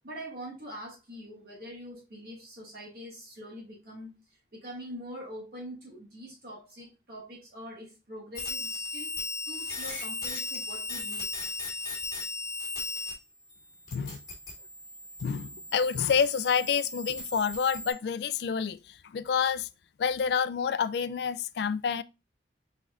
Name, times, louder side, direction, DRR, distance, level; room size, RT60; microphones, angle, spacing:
voice 1, 0.0-11.3, equal, 55° right, 1.3 m, -44 dB
sound 1, 8.4-13.1 13.4-17.9, left 3 dB, 25° left, 1.9 m, -37 dB
voice 2, 15.2-19.7 20.0-22.0, left 6 dB, 65° left, 0.3 m, -28 dB
4.4 x 4.2 x 2.4 m
head